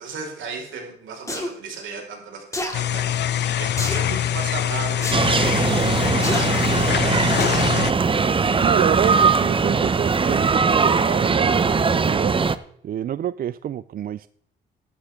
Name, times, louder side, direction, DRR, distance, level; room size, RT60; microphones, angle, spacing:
voice 1, 0.0-5.8 6.3-7.2, right 4 dB, 75° right, 5.1 m, -36 dB
sound 1, 1.3-1.5 2.5-2.8 3.8-4.1 5.0-5.2 6.2-6.5 7.4-7.7 8.1-8.2, left 1 dB, 15° left, 2.8 m, -28 dB
sound 2, 2.7-7.9, left 11 dB, 60° left, 0.6 m, -24 dB
sound 3, 5.1-12.6, right 5 dB, 25° right, 0.8 m, -20 dB
voice 2, 8.6-12.4 12.8-14.3, right 10 dB, 50° right, 0.4 m, -27 dB
13.0 x 11.5 x 3.7 m
cardioid pair, 90°, 20 cm